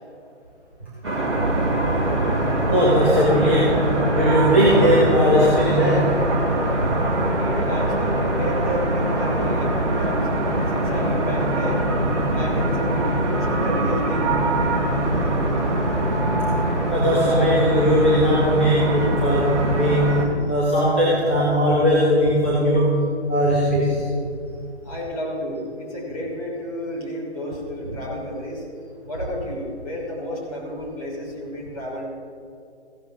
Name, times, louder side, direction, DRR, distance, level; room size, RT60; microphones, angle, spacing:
sound 1, 1.0-20.2, right 1 dB, 25° right, 1.5 m, -22 dB
voice 1, 2.7-6.1 6.8-6.9 15.1-15.2 16.2-16.3 16.9-20.2 20.5-23.0 23.3-24.0, equal, 10° left, -10 dB, 0.7 m, -19 dB
voice 2, 7.1-10.3 10.7-11.8 12.3-14.3 24.8-28.6 29.1-32.1, equal, 30° left, -4 dB, 3.0 m, -31 dB
15.5 x 11.5 x 2.9 m, 2.4 s
figure-of-eight pair, 155°, 34 cm